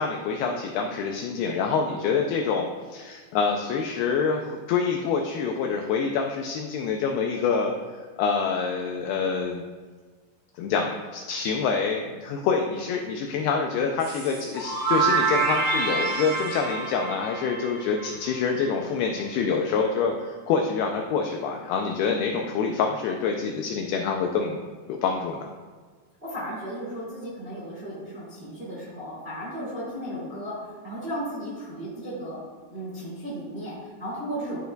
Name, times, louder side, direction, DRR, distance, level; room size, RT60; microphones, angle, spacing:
voice 1, 0.0-7.7 8.2-9.6 10.6-24.6 24.9-25.5, left 5 dB, 85° left, 3 dB, 2.3 m, -26 dB
sound 1, 14.0-18.7, right 4 dB, 60° right, 3.1 m, -27 dB
voice 2, 26.2-32.4 32.7-34.6, equal, 25° right, -7 dB, 1.4 m, -35 dB
12.5 x 6.5 x 2.3 m, 1.5 s
omnidirectional pair, 5.1 m